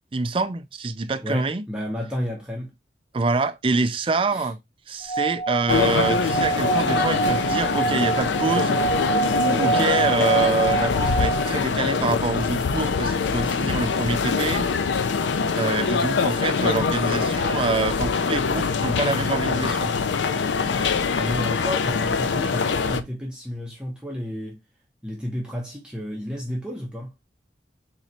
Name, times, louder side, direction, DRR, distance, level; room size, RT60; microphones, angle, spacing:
voice 1, 0.1-1.6 3.1-4.6 4.9-8.8 9.4-14.7 15.6-19.9, right 3 dB, 30° right, 0.4 m, -26 dB
voice 2, 1.2-2.7 4.3-4.5 21.1-24.6 25.0-27.1, left 1 dB, 5° right, 0.7 m, -31 dB
Singing / Glass, 5.0-11.6, right 4 dB, 35° left, 0.9 m, -26 dB
sound 1, 5.7-23.0, left 5 dB, 85° left, 0.5 m, -24 dB
3.9 x 3.1 x 4.2 m
head